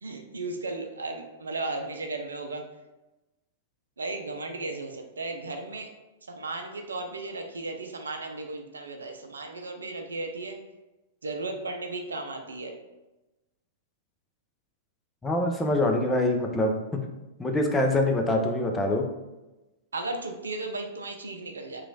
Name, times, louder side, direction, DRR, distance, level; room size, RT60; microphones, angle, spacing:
voice 1, 0.0-2.6 4.0-5.9 6.3-10.6 11.2-12.7 19.9-21.8, right 2 dB, 85° right, 4 dB, 0.5 m, -35 dB
voice 2, 15.2-16.8 17.4-19.0, left 1 dB, 15° left, 2 dB, 0.6 m, -24 dB
3.0 x 2.4 x 3.9 m, 1.0 s
hypercardioid pair, 105°, 0 cm